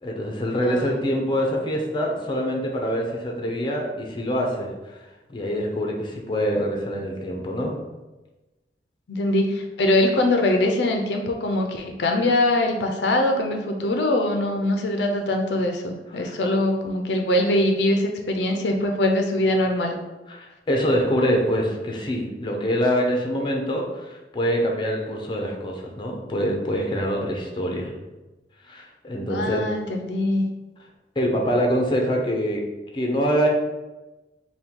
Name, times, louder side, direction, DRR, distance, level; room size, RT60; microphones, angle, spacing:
voice 1, 0.0-5.0 5.3-7.7 16.1-16.3 20.3-27.9 28.6-29.6 31.2-32.6 32.9-33.5, equal, 25° left, 0 dB, 0.5 m, -25 dB
voice 2, 9.1-20.0 29.3-30.4, left 1 dB, 75° left, 3 dB, 0.5 m, -22 dB
3.5 x 2.2 x 4.4 m, 1.1 s
head